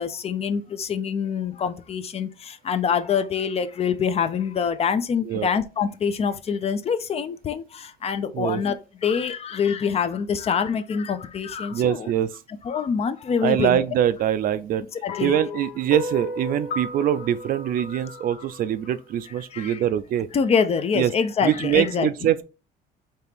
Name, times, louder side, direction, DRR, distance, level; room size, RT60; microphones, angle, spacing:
voice 1, 0.0-2.3 2.7-7.6 8.0-8.8 9.0-12.1 12.6-13.8 15.0-15.4 19.5-19.8 20.3-22.3, left 6 dB, 35° left, 0.5 m, -25 dB
voice 2, 11.7-12.3 13.4-14.8 15.2-20.3 20.9-21.1 21.4-22.4, right 10 dB, 55° right, 0.4 m, -23 dB
sound 1, 15.1-19.4, left 2 dB, 75° left, 0.8 m, -35 dB
4.3 x 2.9 x 3.4 m
cardioid pair, 110°, 17 cm